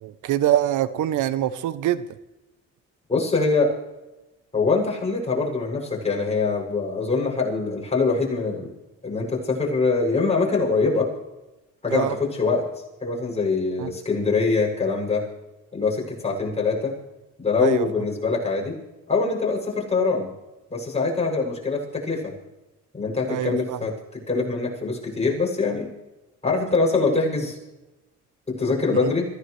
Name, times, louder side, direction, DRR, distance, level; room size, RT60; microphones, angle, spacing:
voice 1, 0.0-2.0 11.9-12.2 13.8-13.9 17.6-17.9 23.3-23.8 29.0-29.1, right 12 dB, 80° right, 14 dB, 0.8 m, -24 dB
voice 2, 3.1-3.7 4.5-8.7 9.0-11.1 11.8-12.6 13.0-15.3 15.7-17.0 17.4-18.8 19.1-20.3 20.7-22.4 22.9-25.9 26.4-27.6 28.5-29.2, left 4 dB, 20° left, -3 dB, 7.4 m, -23 dB
26.0 x 16.5 x 3.3 m, 1.0 s
cardioid pair, 90°, 30 cm